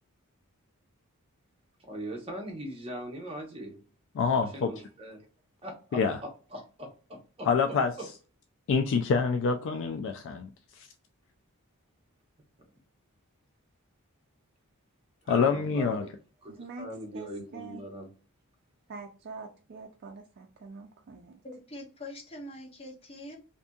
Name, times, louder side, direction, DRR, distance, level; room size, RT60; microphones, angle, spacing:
voice 1, 1.8-3.8 4.3-5.2 5.6-8.1 15.2-16.1 16.4-18.1, equal, 25° right, 0.8 m, -41 dB
voice 2, 4.2-4.7 5.9-6.2 7.5-7.9 8.7-10.5 10.8-10.9 15.3-16.0, left 5 dB, 60° left, 0.3 m, -26 dB
voice 3, 17.1-17.8 18.9-21.4, right 4 dB, 50° right, 0.3 m, -44 dB
voice 4, 21.4-23.4, left 1 dB, 25° left, 0.6 m, -43 dB
2.6 x 2.6 x 2.3 m
head